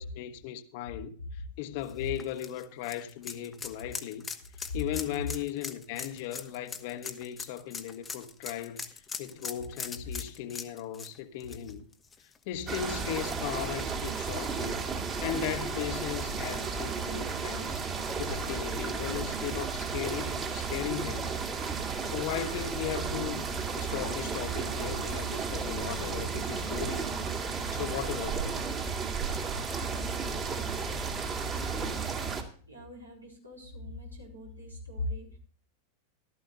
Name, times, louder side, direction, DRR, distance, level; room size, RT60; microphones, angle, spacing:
voice 1, 0.0-4.3 4.7-11.8 12.5-14.8 15.2-21.3 22.0-23.5 23.8-27.1 27.7-28.6, left 11 dB, 50° left, 1.1 m, -37 dB
sound 1, 1.8-12.6 13.0-13.1 14.5-14.6, left 5 dB, 15° left, 1.0 m, -41 dB
sound 2, 12.7-32.4, right 5 dB, 25° right, 2.2 m, -33 dB
voice 2, 30.4-30.8 32.7-35.4, left 2 dB, 85° right, 4.2 m, -41 dB
15.5 x 12.5 x 2.5 m
figure-of-eight pair, 90°, 0 cm